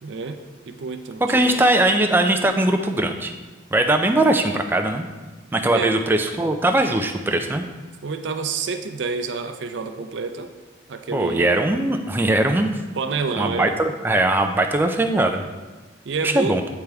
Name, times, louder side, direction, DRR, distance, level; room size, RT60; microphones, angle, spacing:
voice 1, 0.0-1.6 5.7-5.9 8.0-10.5 10.9-11.5 13.0-13.7 16.1-16.6, right 4 dB, 75° right, 7 dB, 0.5 m, -28 dB
voice 2, 1.2-3.3 3.7-5.1 5.5-7.7 11.1-12.8 13.3-15.4 16.2-16.6, right 1 dB, 10° right, 4 dB, 0.3 m, -20 dB
8.8 x 3.4 x 3.4 m, 1.3 s
head